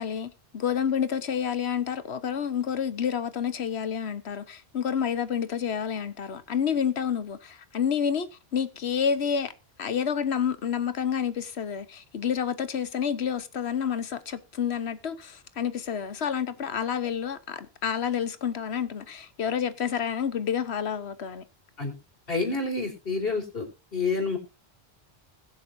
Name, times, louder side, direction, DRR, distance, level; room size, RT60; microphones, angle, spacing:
voice 1, 0.0-9.5 9.8-21.4, left 7 dB, 85° left, 1.3 m, -29 dB
voice 2, 22.3-23.6 23.9-24.4, left 3 dB, 60° left, 4.4 m, -28 dB
21.0 x 7.2 x 2.7 m
omnidirectional pair, 1.1 m